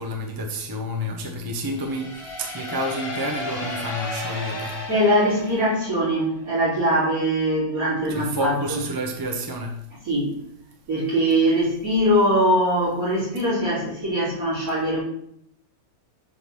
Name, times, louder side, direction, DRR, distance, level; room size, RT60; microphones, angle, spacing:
voice 1, 0.0-4.7 8.1-9.7, equal, 15° right, 2 dB, 0.8 m, -29 dB
sound 1, 1.7-6.4, left 2 dB, 40° left, 1.5 m, -34 dB
voice 2, 4.9-8.8 10.1-10.3 10.9-15.0, equal, 65° right, -8 dB, 3.9 m, -22 dB
7.8 x 3.9 x 6.1 m, 0.72 s
omnidirectional pair, 1.7 m